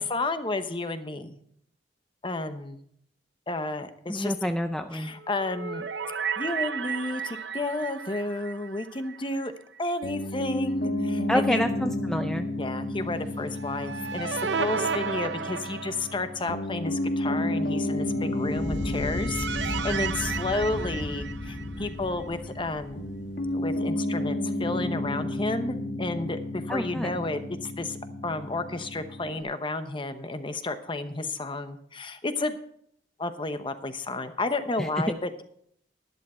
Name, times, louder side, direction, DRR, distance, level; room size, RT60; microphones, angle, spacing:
voice 1, 0.0-1.4 2.2-2.8 3.5-4.5 4.9-5.9 6.4-9.5 9.8-11.7 12.6-23.0 23.5-28.0 28.2-32.6 33.2-35.4, left 2 dB, 30° left, 9 dB, 0.9 m, -32 dB
voice 2, 4.1-5.1 11.3-12.5 26.7-27.2 34.8-34.9, equal, 5° left, 6 dB, 0.4 m, -28 dB
sound 1, 5.2-9.5 9.8-9.9 13.4-16.5 18.6-21.9, right 5 dB, 70° right, 0.6 m, -34 dB
Piano, 10.0-29.4, left 1 dB, 60° left, 1.3 m, -32 dB
Fire, 18.4-23.6, left 1 dB, 75° left, 1.9 m, -36 dB
11.5 x 11.0 x 4.4 m, 0.67 s
head